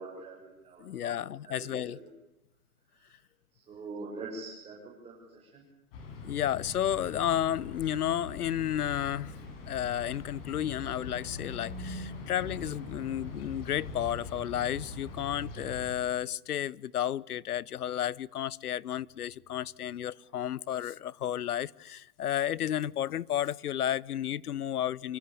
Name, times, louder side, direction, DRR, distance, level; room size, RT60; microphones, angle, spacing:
voice 1, 0.0-1.2 1.5-2.0 3.7-5.2 5.5-5.6, right 3 dB, 15° right, -3 dB, 7.0 m, -43 dB
voice 2, 0.8-2.0 6.2-9.3 9.7-25.2, left 11 dB, 85° left, 24 dB, 1.0 m, -32 dB
sound 1, 5.9-15.9, left 3 dB, 40° left, 7.2 m, -42 dB
26.0 x 24.5 x 8.7 m, 0.86 s
hypercardioid pair, 155°, 44 cm